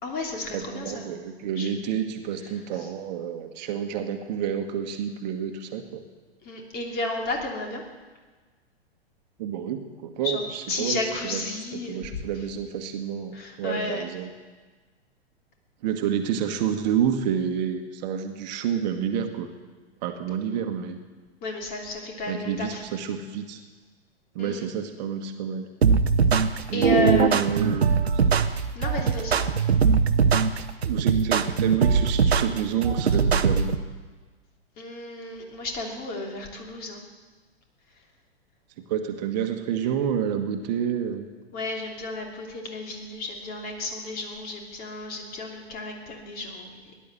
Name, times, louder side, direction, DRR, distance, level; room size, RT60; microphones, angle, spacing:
voice 1, 0.0-1.0 1.6-1.7 2.8-2.9 6.4-7.8 10.2-10.4 10.7-12.0 13.3-14.0 21.4-22.8 24.4-24.7 26.7-27.7 28.7-29.6 34.8-37.0 41.5-46.8, left 2 dB, 30° left, 1 dB, 3.0 m, -32 dB
voice 2, 0.5-6.0 9.4-11.0 11.3-11.4 11.7-14.3 15.8-19.5 20.0-21.0 22.3-23.6 24.3-25.7 26.7-27.9 30.8-33.7 38.9-41.2, right 8 dB, 45° right, 6 dB, 1.5 m, -29 dB
sound 1, 25.8-33.8, right 5 dB, 75° right, 0.9 m, -21 dB
17.5 x 11.0 x 7.8 m, 1.3 s
figure-of-eight pair, 110°, 32 cm